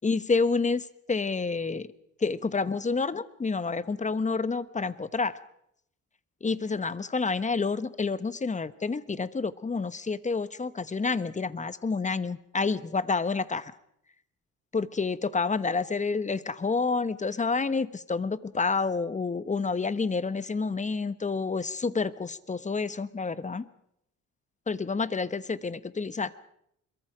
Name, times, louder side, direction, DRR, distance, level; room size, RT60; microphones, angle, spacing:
voice 1, 0.0-0.8 1.1-1.9 2.2-5.4 6.4-13.7 14.7-23.7 24.7-26.4, left 4 dB, 25° left, 16 dB, 1.1 m, -29 dB
25.5 x 22.5 x 5.0 m, 0.75 s
cardioid pair, 90°, 30 cm